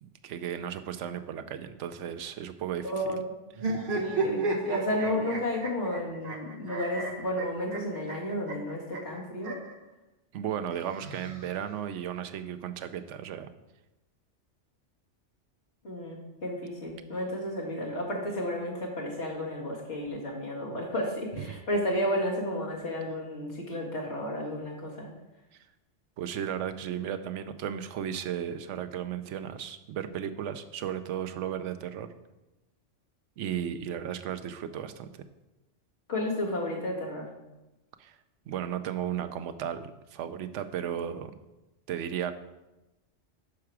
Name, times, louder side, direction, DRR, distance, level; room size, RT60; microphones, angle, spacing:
voice 1, 0.0-2.9 10.3-13.5 25.5-25.6 26.2-32.1 33.4-35.1 38.0-38.2 38.5-41.3 41.9-42.3, right 9 dB, 80° right, 9 dB, 0.9 m, -35 dB
voice 2, 2.8-3.2 3.9-9.6 15.8-25.1 36.1-37.3, left 1 dB, 65° left, -3 dB, 2.3 m, -32 dB
sound 1, 3.6-9.7 10.7-11.8, right 3 dB, 50° right, 1.2 m, -34 dB
11.5 x 4.8 x 4.7 m, 1.0 s
omnidirectional pair, 1.2 m